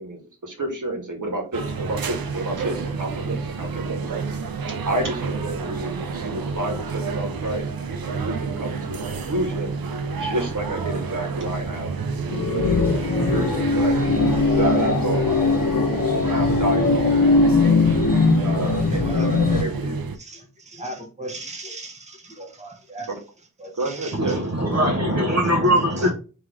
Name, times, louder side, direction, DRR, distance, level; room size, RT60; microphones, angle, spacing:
voice 1, 0.0-4.0 4.8-7.7 8.0-9.7 10.1-11.9 12.3-14.0 14.5-15.8 16.2-17.2 18.4-20.0 23.1-23.2 23.8-24.5, right 2 dB, 60° right, 1 dB, 1.7 m, -29 dB
sound 1, 1.5-20.2, right 5 dB, 90° right, 0.6 m, -29 dB
sound 2, 12.3-19.6, left 4 dB, 65° left, 0.9 m, -20 dB
voice 2, 18.9-19.7 20.2-23.1 23.6-24.9 26.0-26.1, right 2 dB, 20° right, 2 dB, 1.0 m, -37 dB
voice 3, 24.1-26.1, equal, 45° right, -1 dB, 1.1 m, -21 dB
3.7 x 3.2 x 3.1 m, 0.34 s
wide cardioid pair, 65°, 34 cm